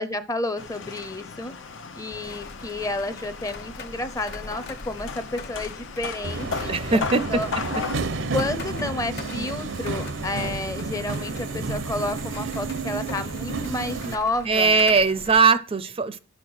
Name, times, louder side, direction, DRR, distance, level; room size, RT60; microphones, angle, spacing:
voice 1, 0.0-1.5 2.0-7.5 8.3-14.8, left 2 dB, 20° left, 0.6 m, -31 dB
sound 1, 0.6-8.0, left 5 dB, 85° left, 0.8 m, -36 dB
sound 2, 2.2-15.4, left 3 dB, 60° left, 1.2 m, -42 dB
Subway metro underground, 6.2-14.1, right 3 dB, 90° right, 0.8 m, -31 dB
voice 2, 6.7-7.4 14.5-16.2, right 4 dB, 30° right, 0.4 m, -20 dB
9.6 x 6.4 x 6.1 m
head